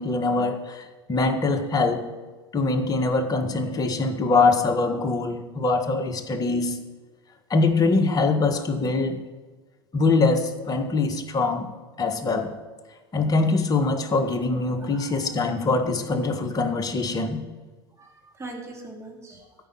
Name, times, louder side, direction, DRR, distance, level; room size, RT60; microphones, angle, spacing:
voice 1, 0.0-2.1 2.5-6.8 7.5-9.2 9.9-11.7 12.0-12.5 13.1-17.4, left 3 dB, 30° left, 6 dB, 1.5 m, -23 dB
voice 2, 14.8-15.6 18.0-19.5, right 2 dB, 20° right, 0 dB, 3.1 m, -42 dB
13.5 x 5.3 x 9.1 m, 1.3 s
hypercardioid pair, 85°, 13 cm